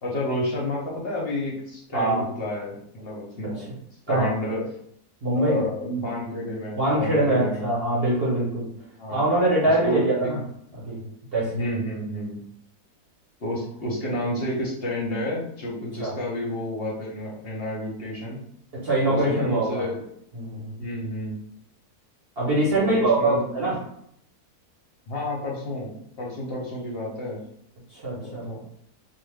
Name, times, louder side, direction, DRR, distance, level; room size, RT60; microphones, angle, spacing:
voice 1, 0.0-3.7 4.1-4.6 5.3-7.6 9.0-9.2 9.8-10.3 11.5-12.4 13.4-18.4 19.0-20.0 20.8-21.4 22.8-23.7 25.1-27.4 28.1-28.6, left 1 dB, 50° left, -4 dB, 0.7 m, -30 dB
voice 2, 1.9-2.2 4.1-4.3 5.2-5.6 6.7-8.7 9.1-10.4 10.7-11.0 11.3-11.7 16.0-16.1 18.7-19.9 20.3-20.8 22.4-23.8 27.9-28.5, right 1 dB, 45° right, -6 dB, 0.9 m, -23 dB
2.4 x 2.3 x 3.3 m, 0.71 s
omnidirectional pair, 1.7 m